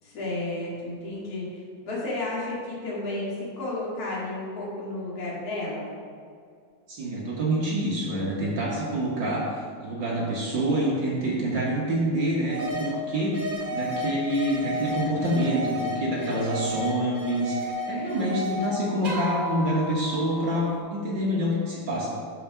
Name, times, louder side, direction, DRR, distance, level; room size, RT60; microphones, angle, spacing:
voice 1, 0.0-5.9 18.1-18.7, left 2 dB, 35° left, -7 dB, 2.2 m, -33 dB
voice 2, 6.9-9.5 9.8-22.1, right 1 dB, 55° right, -5 dB, 1.3 m, -27 dB
sound 1, 12.5-12.9 13.3-18.7 19.0-20.8, equal, 20° right, 1.5 m, -33 dB
6.1 x 5.9 x 5.9 m, 2.2 s
omnidirectional pair, 3.5 m